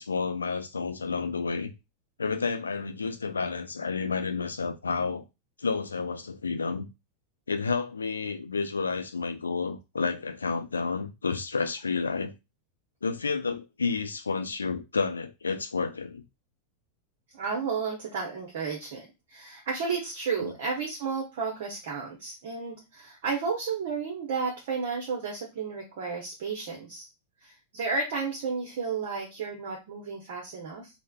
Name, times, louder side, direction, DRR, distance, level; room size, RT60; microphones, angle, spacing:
voice 1, 0.0-1.7 2.2-5.2 5.6-6.9 7.5-12.3 13.0-16.2 20.4-20.5, left 4 dB, 75° left, 0.4 m, -30 dB
voice 2, 17.3-27.1 27.4-30.9, right 5 dB, 55° right, 0.7 m, -32 dB
3.2 x 2.0 x 2.2 m
figure-of-eight pair, 90°, 0 cm